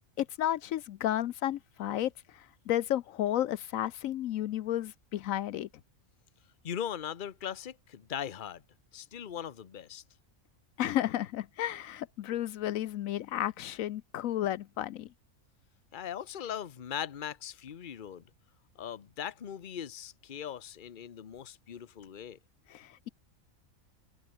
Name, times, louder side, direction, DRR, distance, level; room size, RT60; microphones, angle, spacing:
voice 1, 0.2-5.7 10.8-15.1 22.7-23.1, left 12 dB, 80° left, 1.0 m, -32 dB
voice 2, 6.6-8.6 8.9-10.0 15.9-18.2 18.8-22.4, left 9 dB, 40° left, 1.0 m, -39 dB
open air
omnidirectional pair, 1.4 m